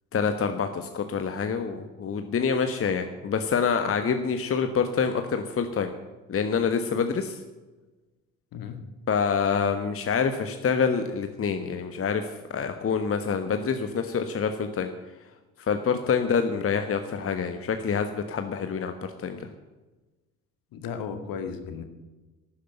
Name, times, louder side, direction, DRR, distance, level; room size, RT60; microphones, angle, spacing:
voice 1, 0.1-5.9 6.3-7.4 9.1-14.9 15.6-18.9 19.2-19.5, left 6 dB, 35° left, 7 dB, 1.4 m, -26 dB
voice 2, 8.5-8.8 20.7-21.8, left 6 dB, 55° left, 7 dB, 2.1 m, -35 dB
12.0 x 10.0 x 9.0 m, 1.2 s
figure-of-eight pair, 55°, 40 cm